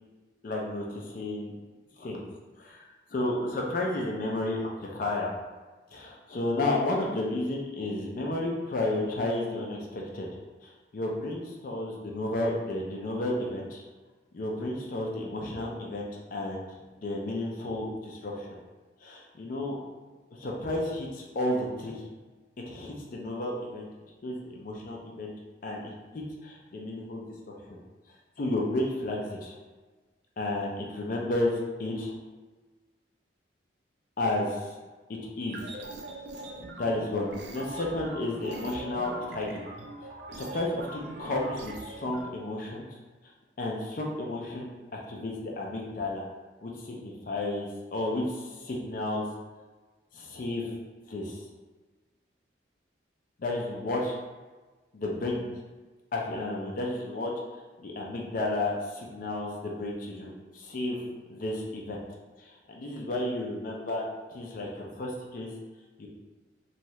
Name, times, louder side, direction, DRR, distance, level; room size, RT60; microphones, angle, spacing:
voice 1, 0.4-1.6 2.0-2.2 2.6-5.3 5.9-10.3 10.6-13.8 14.3-16.7 17.0-18.5 19.0-19.8 20.4-22.0 22.7-23.9 24.2-25.3 25.6-27.8 28.4-29.5 30.4-31.5 31.8-32.1 34.2-34.7 35.4-35.7 36.3-36.4 36.8-39.6 40.3-42.9 43.6-46.2 46.6-49.2 50.1-50.8 51.1-51.4 53.4-54.2 54.9-55.5 56.1-62.0 62.4-64.0 64.3-65.5 66.0-66.1, left 2 dB, 50° left, -1 dB, 0.4 m, -32 dB
sound 1, 35.4-42.2, right 2 dB, 65° right, 0.4 m, -42 dB
2.7 x 2.3 x 3.1 m, 1.3 s
head